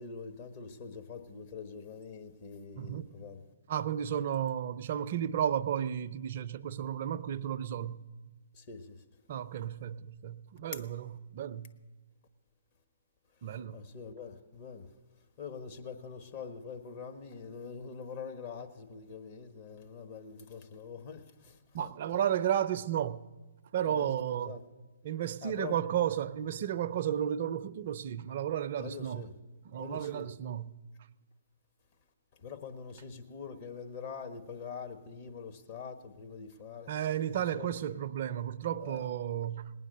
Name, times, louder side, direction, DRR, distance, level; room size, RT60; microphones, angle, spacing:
voice 1, 0.0-3.4 8.5-9.0 10.7-10.8 13.5-14.9 15.4-21.9 23.8-24.6 25.4-25.9 28.8-29.3 29.8-30.3 32.4-36.9 37.3-38.0 38.8-39.0, left 5 dB, 40° left, 1.3 m, -44 dB
voice 2, 2.8-3.1 3.7-8.0 9.3-11.7 13.4-13.8 21.7-23.2 23.7-24.6 25.0-29.3 29.6-30.7 36.9-39.7, right 10 dB, 50° right, 0.5 m, -33 dB
19.0 x 9.3 x 6.8 m
figure-of-eight pair, 135°, 0 cm